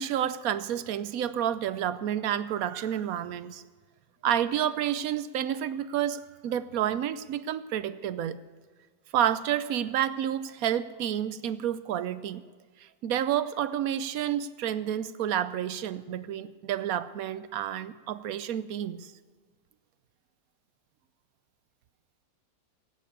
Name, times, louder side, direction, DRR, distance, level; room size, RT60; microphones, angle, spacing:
voice 1, 0.0-3.6 4.2-8.4 9.1-12.4 12.8-19.1, right 10 dB, 65° right, 14 dB, 0.9 m, -30 dB
17.0 x 9.4 x 8.4 m, 1.5 s
omnidirectional pair, 2.0 m